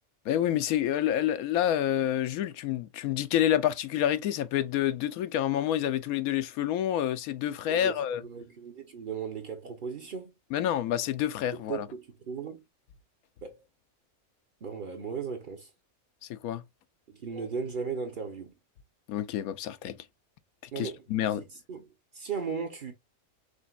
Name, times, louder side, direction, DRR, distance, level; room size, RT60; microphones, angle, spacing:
voice 1, 0.3-8.2 10.5-11.9 16.3-16.6 19.1-19.9 20.8-21.4, left 11 dB, 85° left, 1.0 m, -28 dB
voice 2, 7.7-10.3 11.7-12.6 13.4-13.6 14.6-15.7 17.1-18.5 20.7-21.0 21.4-21.9 22.1-22.9, right 6 dB, 45° right, 0.7 m, -36 dB
5.1 x 3.4 x 2.3 m
omnidirectional pair, 1.5 m